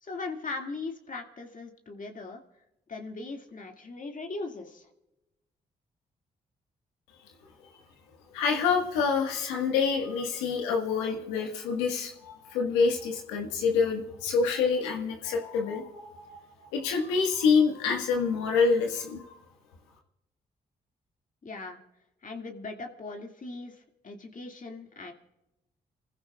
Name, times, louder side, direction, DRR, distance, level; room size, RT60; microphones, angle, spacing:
voice 1, 0.0-2.4 2.9-4.9 21.4-21.8 22.2-25.1, left 3 dB, 45° left, 3 dB, 2.2 m, -39 dB
voice 2, 8.3-16.4 16.7-19.4, left 5 dB, 85° left, 2 dB, 1.6 m, -27 dB
29.5 x 15.0 x 2.4 m, 0.94 s
hypercardioid pair, 40°, 19 cm